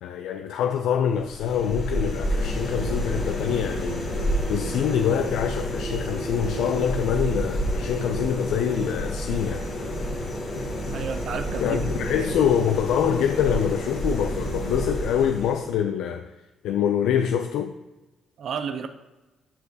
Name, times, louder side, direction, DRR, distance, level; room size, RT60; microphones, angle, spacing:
voice 1, 0.0-4.1 4.5-9.7 11.6-16.3 16.6-17.7, left 8 dB, 85° left, 0.3 m, -25 dB
sound 1, 1.1-15.8, equal, 55° left, 1.9 m, -29 dB
voice 2, 10.9-12.3 18.4-18.9, right 6 dB, 65° right, 0.5 m, -32 dB
12.5 x 4.3 x 2.7 m
cardioid pair, 90°, 0 cm